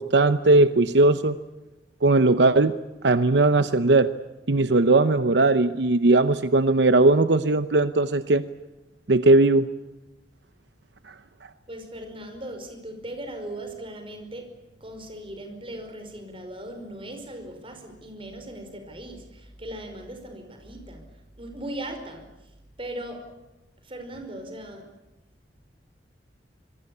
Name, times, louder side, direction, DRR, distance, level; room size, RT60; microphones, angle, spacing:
voice 1, 0.0-1.4 2.0-2.7 3.0-4.1 4.5-8.4 9.1-9.7 11.1-11.2, right 2 dB, 75° right, 12 dB, 0.8 m, -19 dB
voice 2, 11.7-21.0 21.4-22.3 22.8-23.3 23.8-24.9, right 1 dB, 30° right, 6 dB, 5.2 m, -38 dB
26.5 x 21.5 x 8.5 m, 1.0 s
head